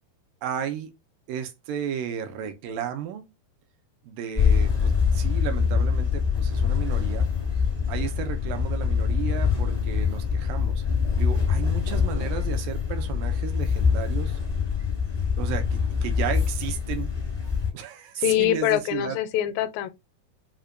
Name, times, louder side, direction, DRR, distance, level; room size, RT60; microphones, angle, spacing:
voice 1, 0.4-0.9 1.3-3.2 4.0-7.3 7.9-10.8 11.2-14.4 15.4-17.1 17.7-19.2, right 9 dB, 80° right, 2.3 m, -33 dB
sound 1, 4.4-17.7, left 6 dB, 40° left, 0.5 m, -24 dB
voice 2, 18.2-19.9, left 12 dB, 85° left, 2.2 m, -24 dB
5.6 x 2.2 x 2.4 m
omnidirectional pair, 4.1 m